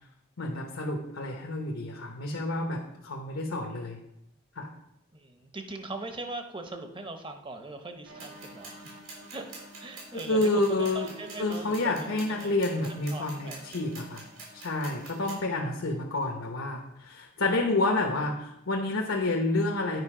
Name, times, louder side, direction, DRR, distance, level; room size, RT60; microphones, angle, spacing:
voice 1, 0.4-4.0 4.6-4.7 10.3-11.1 11.4-14.3 14.5-20.0, left 2 dB, 85° left, 1 dB, 1.0 m, -29 dB
voice 2, 5.1-8.9 9.3-9.5 9.8-12.6 12.9-13.6 15.2-15.6, right 2 dB, 25° right, 7 dB, 0.7 m, -41 dB
sound 1, 8.1-15.7, right 1 dB, 65° right, 1.8 m, -50 dB
sound 2, 8.2-15.3, right 3 dB, 85° right, 3.6 m, -47 dB
9.5 x 5.1 x 4.9 m, 0.85 s
head